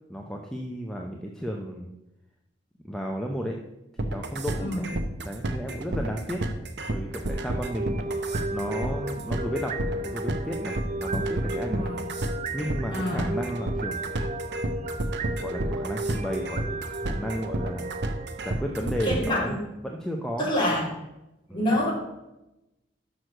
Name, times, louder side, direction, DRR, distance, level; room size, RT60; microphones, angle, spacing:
voice 1, 0.1-1.9 2.8-3.6 4.0-4.8 5.2-6.4 6.9-11.9 12.5-14.1 15.4-19.6 19.8-20.5 21.5-21.7, equal, 5° left, 1 dB, 0.6 m, -33 dB
sound 1, 4.0-19.4, right 2 dB, 65° right, 0.8 m, -30 dB
voice 2, 4.6-4.9 11.6-12.0 12.9-13.3 19.0-19.6 20.4-20.9 21.5-21.9, left 1 dB, 25° left, -4 dB, 2.8 m, -27 dB
sound 2, 7.1-19.2, right 2 dB, 40° right, 0.5 m, -35 dB
6.3 x 6.2 x 6.5 m, 0.94 s
head